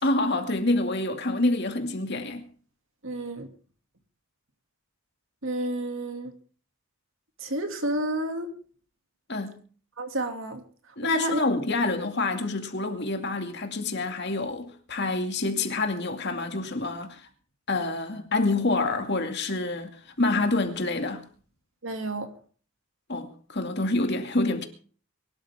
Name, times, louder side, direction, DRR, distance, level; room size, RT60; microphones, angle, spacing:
voice 1, 0.0-2.4 9.3-9.5 11.0-17.2 17.7-21.3 23.1-24.7, left 2 dB, 50° left, 2.3 m, -27 dB
voice 2, 3.0-3.5 5.4-6.3 7.4-8.5 10.0-10.6 11.1-11.4 21.8-22.3, right 1 dB, 60° right, 2.5 m, -30 dB
23.5 x 12.5 x 3.6 m
head